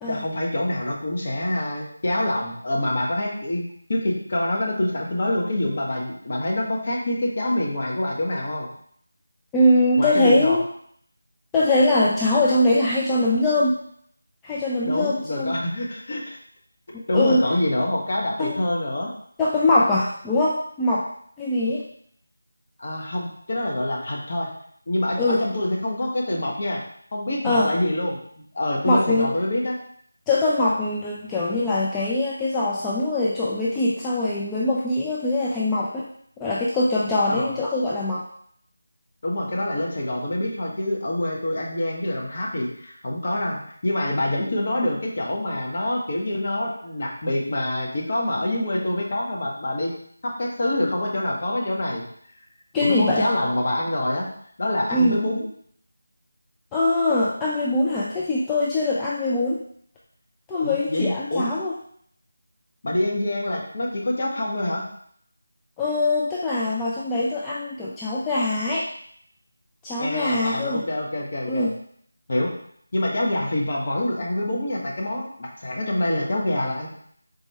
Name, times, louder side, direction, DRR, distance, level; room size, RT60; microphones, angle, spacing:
voice 1, 0.0-3.6 3.9-8.7 10.0-10.6 14.8-16.4 17.1-19.1 22.8-24.5 24.9-26.8 27.1-28.2 28.5-29.8 37.3-37.5 39.2-49.9 50.2-52.0 52.8-54.3 54.6-55.5 60.6-61.5 62.8-64.8 70.0-71.7 72.3-72.5 72.9-76.9, left 1 dB, 45° left, -3 dB, 1.2 m, -26 dB
voice 2, 9.5-10.6 11.5-13.8 14.4-15.6 16.9-17.5 18.4-18.6 19.4-21.1 21.4-21.8 25.2-25.4 27.4-27.7 28.9-29.3 30.3-36.1 36.4-38.3 52.7-53.3 54.9-55.2 56.7-59.6 60.5-61.7 65.8-68.9 69.8-70.8 71.5-71.7, left 2 dB, 10° left, -7 dB, 0.3 m, -22 dB
4.1 x 3.4 x 3.2 m, 0.64 s
figure-of-eight pair, 165°, 0 cm